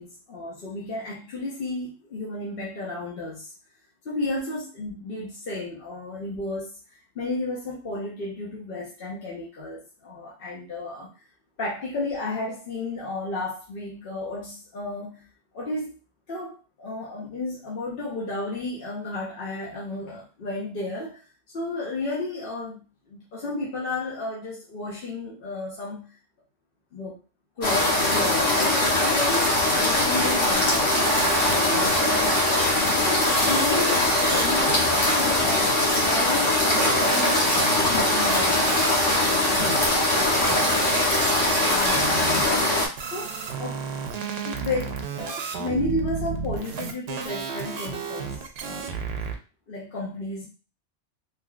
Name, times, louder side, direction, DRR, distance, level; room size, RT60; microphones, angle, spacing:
voice 1, 0.0-3.5 4.0-6.8 7.1-11.1 11.6-15.3 15.5-15.9 16.3-21.2 21.5-26.1 26.9-27.2 27.6-30.9 31.5-32.3 32.9-40.6 40.9-43.3 43.6-43.8 44.4-49.0 49.7-50.5, left 2 dB, 55° left, -5 dB, 0.9 m, -33 dB
sound 1, 27.6-42.9, left 1 dB, 90° left, 1.3 m, -21 dB
sound 2, 30.5-32.6 33.0-36.3 36.7-38.9 39.5-40.0 40.4-49.3, right 5 dB, 65° right, 0.8 m, -33 dB
3.7 x 2.8 x 2.3 m, 0.33 s
omnidirectional pair, 1.3 m